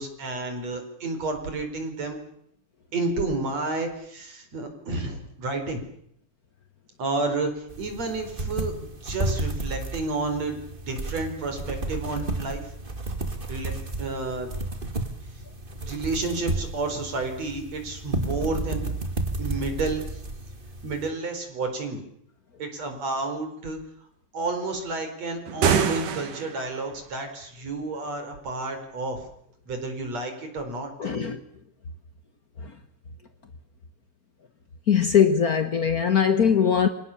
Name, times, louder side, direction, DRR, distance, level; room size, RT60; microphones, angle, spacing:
voice 1, 0.0-2.2 2.9-5.9 7.0-8.7 9.0-10.6 10.9-12.6 13.5-14.5 15.8-18.9 19.4-20.0 20.8-22.0 22.6-23.8 24.3-29.2 29.7-30.9, right 3 dB, 50° right, 5.6 m, -30 dB
sound 1, 7.7-21.1, right 2 dB, 20° right, 1.8 m, -32 dB
sound 2, 25.5-26.8, right 7 dB, 70° right, 3.6 m, -24 dB
voice 2, 31.0-31.4 32.6-32.7 34.9-36.9, left 7 dB, 80° left, 0.8 m, -21 dB
29.0 x 25.5 x 7.2 m
omnidirectional pair, 3.9 m